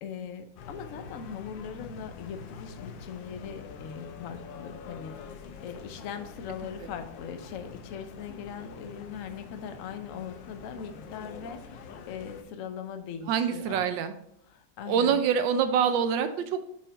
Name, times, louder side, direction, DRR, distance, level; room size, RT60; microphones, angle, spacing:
voice 1, 0.0-5.2 5.6-13.9 14.5-15.2, left 7 dB, 65° left, 8 dB, 0.8 m, -40 dB
sound 1, 0.6-12.4, left 5 dB, 85° left, 1.4 m, -45 dB
voice 2, 13.3-14.1 14.9-16.7, right 7 dB, 85° right, 9 dB, 1.4 m, -25 dB
6.1 x 4.8 x 4.0 m, 0.72 s
omnidirectional pair, 2.0 m